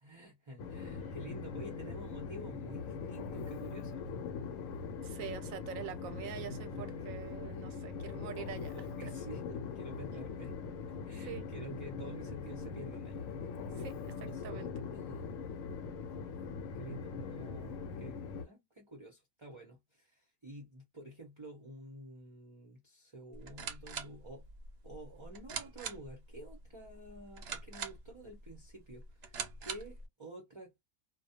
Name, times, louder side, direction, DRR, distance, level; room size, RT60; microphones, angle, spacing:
voice 1, 0.0-4.1 7.7-7.9 8.7-10.6 11.0-13.3 14.2-14.4 14.9-15.7 16.7-24.5 24.8-30.8, right 1 dB, 30° right, 0.6 m, -50 dB
Train, 0.6-18.4, left 5 dB, 80° left, 1.0 m, -41 dB
voice 2, 5.0-9.1 11.2-11.5 13.8-14.8, right 9 dB, 85° right, 1.0 m, -45 dB
sound 1, 23.3-30.1, right 5 dB, 60° right, 0.8 m, -44 dB
2.3 x 2.2 x 2.7 m
omnidirectional pair, 1.4 m